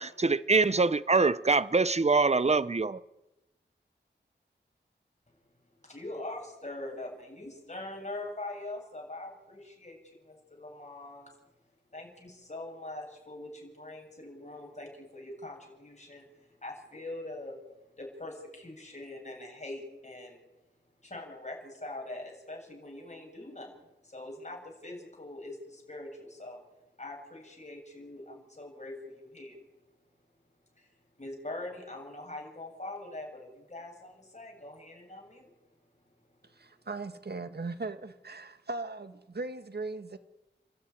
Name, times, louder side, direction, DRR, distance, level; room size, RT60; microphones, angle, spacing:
voice 1, 0.0-3.0, right 3 dB, 35° right, 0.9 m, -24 dB
voice 2, 5.8-11.3 11.9-17.6 17.9-20.4 21.0-26.6 27.0-29.6 30.8-30.9 31.2-35.7 36.3-36.6, left 2 dB, 35° left, 7.6 m, -43 dB
voice 3, 36.5-40.2, right 3 dB, 60° right, 1.9 m, -38 dB
30.0 x 13.5 x 9.8 m
wide cardioid pair, 65°, 19 cm